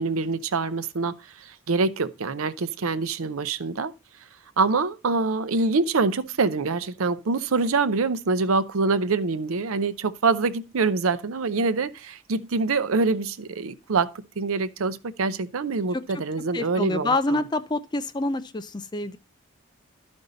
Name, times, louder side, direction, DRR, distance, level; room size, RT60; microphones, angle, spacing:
voice 1, 0.0-3.9 4.6-17.5, right 4 dB, 80° right, 0.6 m, -25 dB
voice 2, 16.5-19.2, left 2 dB, 20° left, 0.4 m, -27 dB
12.5 x 5.3 x 4.0 m
head